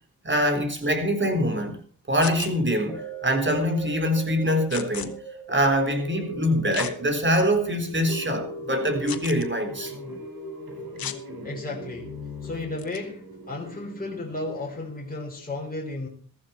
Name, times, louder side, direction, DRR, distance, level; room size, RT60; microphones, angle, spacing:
voice 1, 0.2-1.8 2.1-5.1 5.5-9.9, equal, 30° right, 3.9 m, -24 dB
sound 1, 2.2-2.5 4.7-5.1 6.7-6.9 7.6-7.7 9.1-9.5 11.0-11.2 12.8-13.0, left 10 dB, 80° left, 1.2 m, -34 dB
sound 2, 2.9-13.2 13.7-13.8, right 1 dB, ahead, 5.7 m, -39 dB
sound 3, 8.7-14.8, left 1 dB, 80° right, 5.0 m, -43 dB
voice 2, 11.4-12.1 12.4-16.1, left 2 dB, 25° left, 3.6 m, -34 dB
14.5 x 14.0 x 4.3 m
cardioid pair, 55°, 35 cm